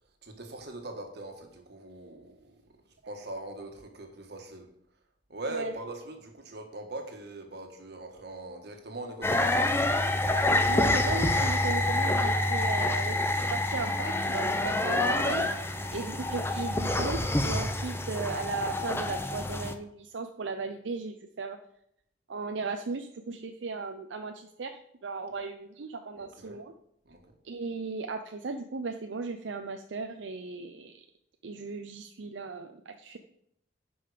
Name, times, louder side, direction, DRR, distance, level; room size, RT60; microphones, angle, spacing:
voice 1, 0.2-4.7 5.3-9.8 15.8-16.1 26.1-26.6 27.0-27.3, right 2 dB, 65° right, 4 dB, 1.6 m, -41 dB
sound 1, 9.2-19.7, left 2 dB, 15° left, 0.7 m, -27 dB
voice 2, 10.7-21.6 22.3-26.7 27.4-31.0 31.4-33.2, right 4 dB, 85° right, 6 dB, 0.6 m, -36 dB
10.0 x 5.5 x 5.1 m, 0.73 s
head